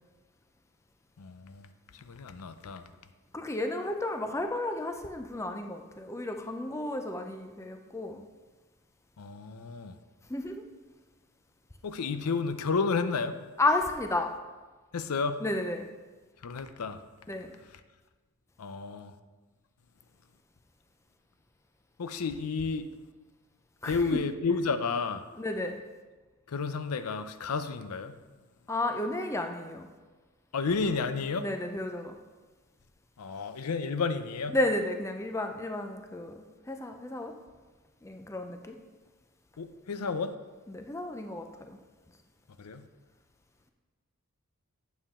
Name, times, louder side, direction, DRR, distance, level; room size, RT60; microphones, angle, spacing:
voice 1, 1.2-2.8 9.2-9.9 11.8-13.4 14.9-15.4 16.4-17.0 18.6-19.1 22.0-22.9 23.8-25.3 26.5-28.2 30.5-31.5 33.2-34.6 39.6-40.3 42.6-42.9, left 4 dB, 90° left, 10 dB, 0.5 m, -31 dB
voice 2, 3.3-8.2 10.3-10.6 13.6-14.3 15.4-15.9 17.3-17.5 23.8-24.2 25.4-25.8 28.7-29.9 31.4-32.2 34.5-37.3 38.0-38.8 40.7-41.8, left 2 dB, 15° left, 5 dB, 0.5 m, -32 dB
9.1 x 7.1 x 3.6 m, 1.3 s
head